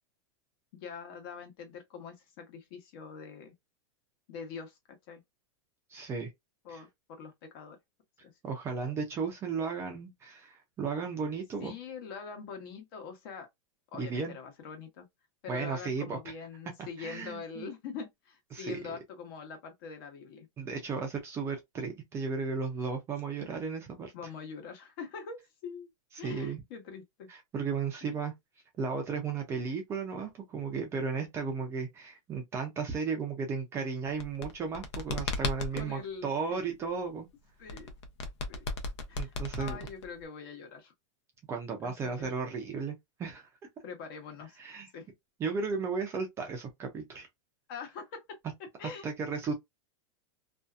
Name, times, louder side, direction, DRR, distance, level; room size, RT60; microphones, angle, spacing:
voice 1, 0.7-3.5 4.3-5.2 6.6-7.8 8.2-8.3 11.6-13.5 13.9-15.1 15.4-20.5 23.4-23.5 24.1-25.9 26.2-27.3 28.1-28.2 35.7-36.8 37.6-37.9 38.5-38.6 39.1-40.9 41.8-42.3 43.8-44.6 44.9-45.1 47.7-49.0, left 6 dB, 45° left, 1.0 m, -44 dB
voice 2, 5.9-6.3 6.7-6.8 8.4-11.7 14.0-14.3 15.5-16.2 17.0-17.7 18.5-18.8 20.6-24.1 26.1-26.6 27.3-28.3 28.8-37.3 39.2-39.8 41.5-43.5 44.6-44.9 45.4-47.3 49.0-49.5, right 5 dB, 15° right, 0.5 m, -35 dB
sound 1, 34.1-35.9 37.7-40.3, left 3 dB, 65° left, 0.7 m, -35 dB
2.6 x 2.4 x 2.3 m
supercardioid pair, 165°, 16 cm